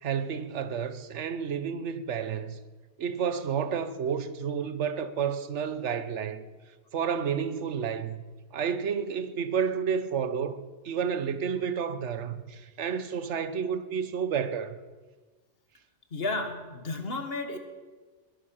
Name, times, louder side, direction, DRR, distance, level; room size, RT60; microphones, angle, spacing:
voice 1, 0.0-2.6 3.0-6.4 6.9-8.2 8.5-14.8, right 7 dB, 75° right, 1.2 m, -30 dB
voice 2, 16.1-17.6, left 2 dB, 55° left, 1.8 m, -32 dB
21.0 x 11.0 x 5.8 m
omnidirectional pair, 1.2 m